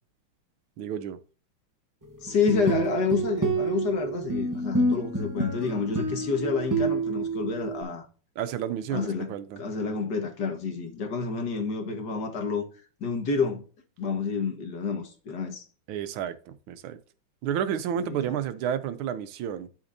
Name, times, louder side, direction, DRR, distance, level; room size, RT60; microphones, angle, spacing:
voice 1, 0.8-1.2 8.4-9.6 15.9-17.0 17.4-19.7, right 9 dB, 80° right, 1.6 m, -31 dB
voice 2, 2.2-8.1 8.9-12.6 13.0-13.6 14.0-15.6 18.0-18.4, left 5 dB, 55° left, 1.9 m, -29 dB
sound 1, 2.3-7.8, right 2 dB, 30° right, 0.3 m, -28 dB
11.5 x 5.1 x 2.7 m
omnidirectional pair, 2.3 m